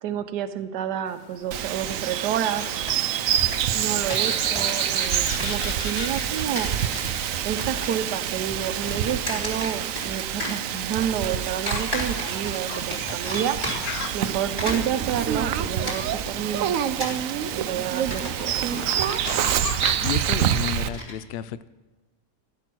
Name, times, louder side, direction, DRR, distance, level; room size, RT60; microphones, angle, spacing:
voice 1, 0.0-2.7 3.7-6.7 7.4-13.6 14.1-17.1 17.5-18.6, right 9 dB, 80° right, 10 dB, 1.4 m, -29 dB
sound 1, 1.1-19.9, left 7 dB, 65° left, 1.4 m, -40 dB
Bird vocalization bird call bird song, 1.5-20.9, right 10 dB, 65° right, 0.9 m, -27 dB
sound 2, 2.7-3.2 3.5-3.6 3.9-4.8 5.1-5.9 6.4-7.2 7.4-8.0 8.3-10.1 10.4-11.1 11.7-12.5 12.9-14.0 14.4-21.1, left 1 dB, 15° left, 3.8 m, -34 dB
voice 2, 20.0-21.7, left 9 dB, 80° left, 15 dB, 0.5 m, -32 dB
15.5 x 9.9 x 6.1 m, 1.2 s
omnidirectional pair, 1.8 m